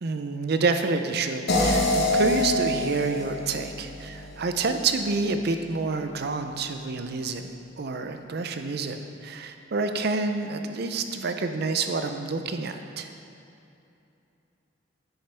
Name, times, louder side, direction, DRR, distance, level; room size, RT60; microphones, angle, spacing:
voice 1, 0.0-13.1, right 3 dB, 55° right, 7 dB, 0.5 m, -28 dB
sound 1, 1.5-4.6, left 1 dB, 60° left, 1.2 m, -25 dB
10.0 x 6.5 x 3.4 m, 2.7 s
head